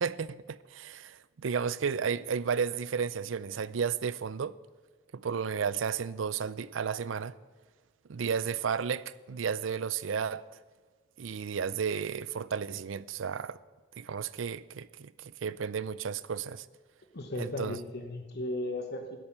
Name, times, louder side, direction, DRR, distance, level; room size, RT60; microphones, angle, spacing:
voice 1, 0.0-4.6 5.1-7.3 8.1-10.4 11.2-13.6 14.0-16.7 17.4-17.8, right 6 dB, 80° right, 0.5 m, -33 dB
voice 2, 17.1-19.2, left 1 dB, 55° left, 1.1 m, -36 dB
13.0 x 12.0 x 6.0 m
head